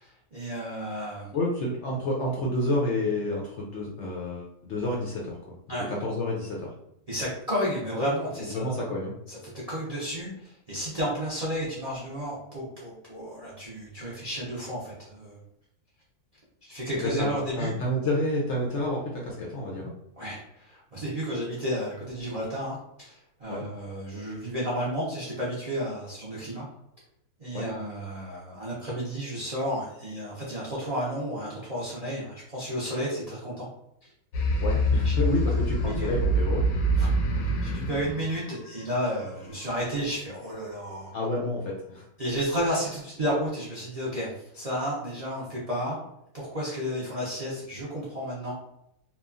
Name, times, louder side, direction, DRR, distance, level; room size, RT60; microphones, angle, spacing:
voice 1, 0.0-1.3 5.7-5.9 7.1-8.7 9.3-15.4 16.6-17.7 20.2-26.6 27.4-33.7 34.0-34.1 35.0-35.2 35.7-36.1 37.0-37.1 37.6-41.1 42.2-46.0 46.3-48.5, equal, 65° right, -7 dB, 0.3 m, -32 dB
voice 2, 1.3-5.4 5.9-6.7 8.4-9.1 16.9-19.9 23.5-23.6 27.5-27.7 34.6-36.7 41.1-42.0, left 1 dB, 70° left, -3 dB, 0.7 m, -29 dB
sound 1, 34.3-39.3, right 1 dB, 85° left, 1.1 m, -26 dB
3.0 x 2.2 x 2.4 m, 0.79 s
omnidirectional pair, 1.6 m